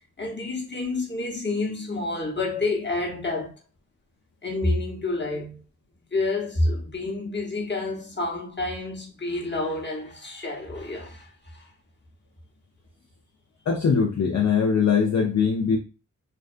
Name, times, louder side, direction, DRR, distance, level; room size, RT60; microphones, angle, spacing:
voice 1, 0.2-3.6 4.4-5.6 6.1-11.6, left 2 dB, 30° left, 1.0 m, -29 dB
voice 2, 13.7-15.8, left 6 dB, 50° left, 0.6 m, -21 dB
2.4 x 2.2 x 2.5 m
cardioid pair, 45°, 34 cm